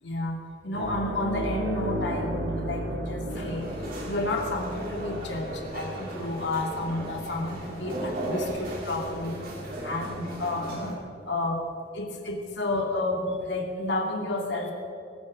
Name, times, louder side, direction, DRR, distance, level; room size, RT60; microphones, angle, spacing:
voice 1, 0.0-9.4 9.8-11.0 11.3-11.6 11.9-14.7, left 2 dB, 70° left, 1 dB, 2.3 m, -31 dB
sound 1, 0.7-9.7 10.0-10.2 12.3-12.4, right 1 dB, 90° right, 1.9 m, -35 dB
sound 2, 3.3-10.9, right 1 dB, 55° right, 3.2 m, -36 dB
22.5 x 14.5 x 3.8 m, 2.6 s
head